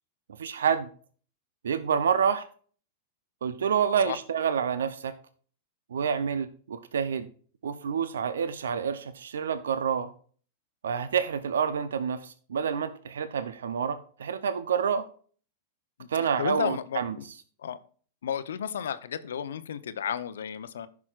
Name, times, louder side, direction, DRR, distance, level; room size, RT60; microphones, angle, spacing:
voice 1, 0.4-0.9 1.6-2.4 3.4-5.1 5.9-7.3 7.6-10.1 10.8-15.1 16.1-17.2, right 7 dB, 80° right, 11 dB, 0.6 m, -28 dB
voice 2, 16.4-17.2 17.6-17.8 18.2-20.9, left 8 dB, 75° left, 12 dB, 0.7 m, -33 dB
15.0 x 6.0 x 2.4 m, 0.44 s
hypercardioid pair, 105°, 0 cm